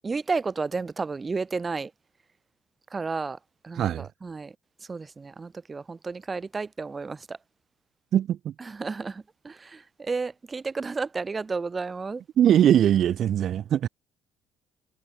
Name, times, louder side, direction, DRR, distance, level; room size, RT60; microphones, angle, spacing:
voice 1, 0.0-1.9 2.9-3.4 3.6-4.5 4.9-7.4 8.7-12.2, right 4 dB, 20° right, 4.7 m, -32 dB
voice 2, 3.8-4.1 8.1-8.5 12.4-13.9, right 10 dB, 50° right, 0.6 m, -21 dB
cardioid pair, 135°, 0 cm